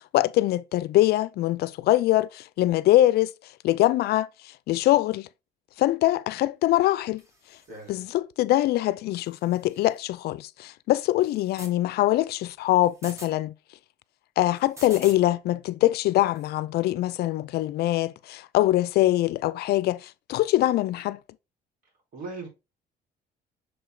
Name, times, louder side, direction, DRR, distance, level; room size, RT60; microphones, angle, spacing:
voice 1, 0.0-3.3 3.6-4.3 4.7-5.3 5.8-7.2 7.9-13.5 14.4-21.2, left 15 dB, 70° left, 0.5 m, -23 dB
sound 1, 7.2-7.9 9.2-10.0 11.2-11.7 12.8-13.3 14.6-15.2 16.3-16.5, right 1 dB, 15° right, 2.1 m, -46 dB
voice 2, 7.7-8.0 22.1-22.5, right 3 dB, 55° right, 4.5 m, -38 dB
6.4 x 4.5 x 3.7 m
cardioid pair, 110°, 17 cm